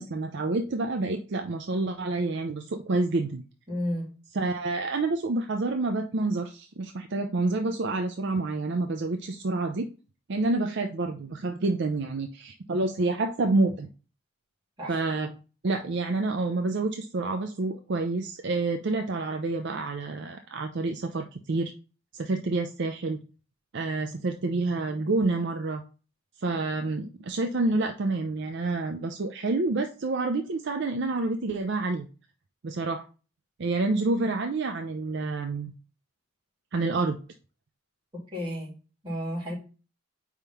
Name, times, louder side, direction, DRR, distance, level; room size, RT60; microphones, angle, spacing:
voice 1, 0.0-3.4 4.3-9.9 10.3-13.9 14.9-15.3 15.6-21.7 22.1-23.2 23.7-25.8 26.4-32.1 32.6-33.0 33.6-35.7 36.7-37.2, right 3 dB, 55° right, 5 dB, 0.5 m, -28 dB
voice 2, 3.7-4.1 14.8-15.0 38.1-38.7 39.0-39.5, equal, 20° right, -4 dB, 2.4 m, -32 dB
4.8 x 3.6 x 5.6 m, 0.35 s
head